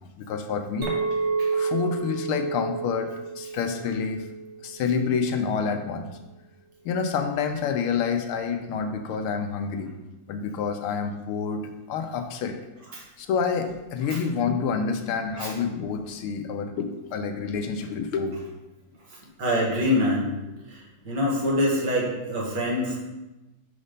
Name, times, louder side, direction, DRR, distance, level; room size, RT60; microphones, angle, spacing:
voice 1, 0.2-0.9 1.5-3.1 3.4-4.3 4.6-6.1 6.8-9.9 10.3-12.6 13.2-18.4, left 6 dB, 80° left, 7 dB, 1.5 m, -28 dB
Chink clink, 0.8-5.3, right 5 dB, 70° right, 1.6 m, -30 dB
voice 2, 19.4-20.3 20.7-20.8 21.1-23.0, left 1 dB, 55° right, -4 dB, 2.0 m, -24 dB
5.3 x 4.4 x 5.0 m, 1.0 s
omnidirectional pair, 2.4 m